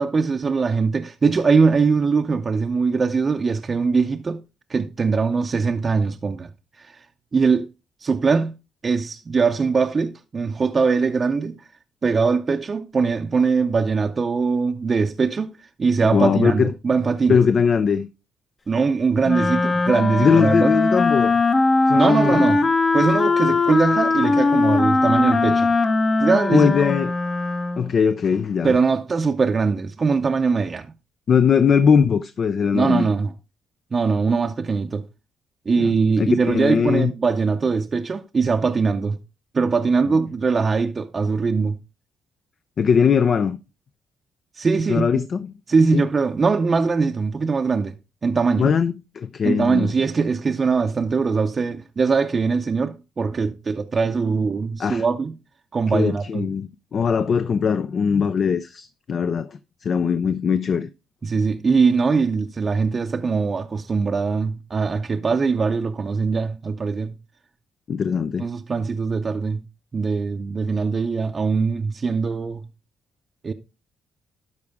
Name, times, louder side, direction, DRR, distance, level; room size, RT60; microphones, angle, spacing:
voice 1, 0.0-4.4 4.7-6.5 6.8-7.1 7.3-7.7 8.0-8.6 8.8-11.6 12.0-17.4 18.7-20.7 21.9-22.7 22.9-25.8 26.2-26.8 28.6-30.9 32.7-33.3 33.9-35.0 35.7-39.2 39.5-41.8 44.5-45.1 45.7-47.9 48.2-48.8 49.4-55.4 55.7-56.5 61.2-67.1 68.4-69.7 69.9-72.7 73.4-73.5, right 4 dB, 35° right, 0.6 m, -21 dB
voice 2, 16.1-16.7 17.3-18.1 20.2-21.4 21.9-22.5 26.5-27.1 27.8-28.7 31.3-33.1 35.8-37.1 42.8-43.6 44.9-45.4 45.9-46.0 48.6-49.9 54.8-55.0 55.9-60.9 67.9-68.4, left 6 dB, 50° left, 0.4 m, -20 dB
Wind instrument woodwind instrument, 19.2-27.9, left 3 dB, 35° left, 0.8 m, -20 dB
12.0 x 4.8 x 3.5 m
cardioid pair, 90°, 0 cm